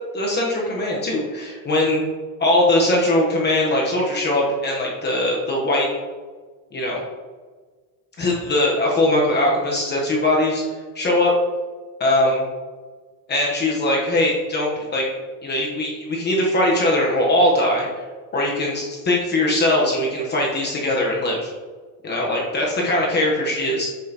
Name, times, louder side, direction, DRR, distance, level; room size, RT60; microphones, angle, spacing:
voice 1, 0.1-2.0 2.4-5.9 6.7-7.0 8.2-10.6 10.9-11.3 12.0-12.4 13.3-15.1 15.4-17.9 18.3-21.5 22.0-23.9, left 1 dB, 25° left, -3 dB, 1.1 m, -20 dB
7.6 x 7.4 x 2.9 m, 1.5 s
cardioid pair, 155°, 45 cm